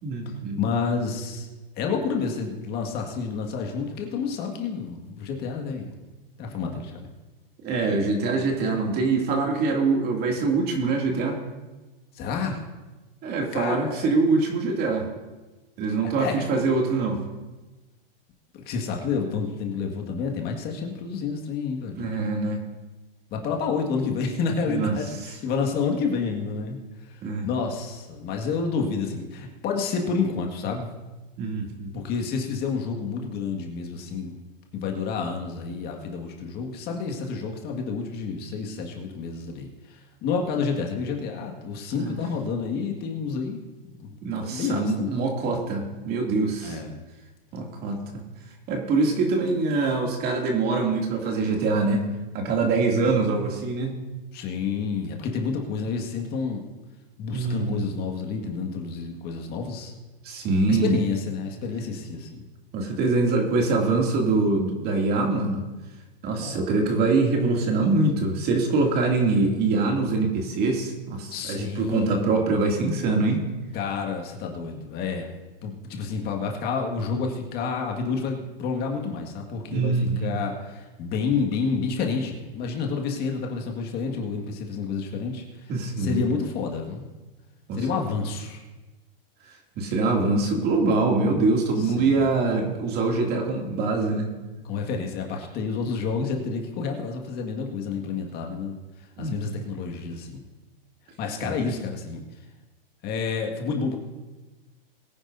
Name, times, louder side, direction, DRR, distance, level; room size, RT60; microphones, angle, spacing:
voice 1, 0.0-0.6 7.6-11.4 13.2-15.1 15.8-17.2 21.9-22.6 24.7-24.9 27.2-27.5 31.4-32.0 42.0-42.2 44.2-46.8 47.5-48.2 48.7-52.1 52.3-54.0 57.3-57.9 60.2-61.0 62.7-65.6 66.2-73.4 79.7-80.3 85.7-86.2 87.7-87.8 89.8-94.3 99.2-99.3 101.4-101.5, right 3 dB, 35° right, 1 dB, 2.6 m, -24 dB
voice 2, 0.6-1.5 1.8-6.0 6.4-7.1 12.1-12.6 13.5-14.2 16.0-16.5 18.5-22.0 23.3-27.2 27.4-30.9 31.9-34.4 34.7-43.6 44.0-44.2 44.4-45.2 46.6-47.0 54.3-56.6 57.2-59.9 60.7-62.5 66.4-66.6 71.3-72.4 73.7-75.3 75.6-85.7 86.0-87.1 87.7-88.6 91.8-92.2 94.6-98.8 99.2-100.5 101.2-102.2 103.0-104.0, left 5 dB, 35° left, 1 dB, 1.9 m, -29 dB
22.5 x 10.0 x 2.7 m, 1.2 s
hypercardioid pair, 130°, 29 cm